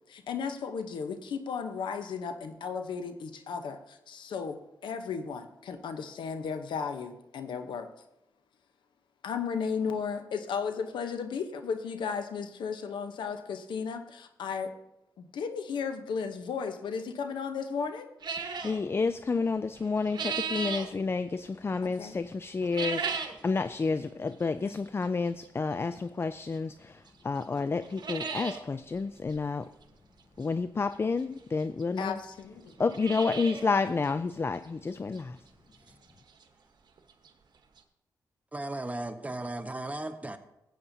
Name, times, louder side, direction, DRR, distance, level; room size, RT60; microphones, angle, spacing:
voice 1, 0.1-7.9 9.2-14.7 15.2-18.1 22.0-22.1 32.0-32.7, left 6 dB, 85° left, 0.8 m, -35 dB
sound 1, 18.2-18.8 19.7-20.9 22.6-23.4 23.8-23.9 24.7-24.8 26.5-26.6 27.1-27.2 27.4-27.5 27.8-28.6 29.0-29.1 29.3-29.4 30.9-31.0 31.8-31.9 32.1-32.2 32.7-33.7 34.0-34.1 34.6-34.7 35.2-35.3 37.0-37.1 37.2-37.3 37.8-37.9, right 5 dB, 65° right, 1.1 m, -35 dB
voice 2, 18.6-29.7 30.4-32.2 32.8-35.4, left 4 dB, 30° left, 0.3 m, -30 dB
voice 3, 38.5-40.4, right 2 dB, 20° right, 0.9 m, -36 dB
14.5 x 8.4 x 2.7 m
cardioid pair, 65°, 8 cm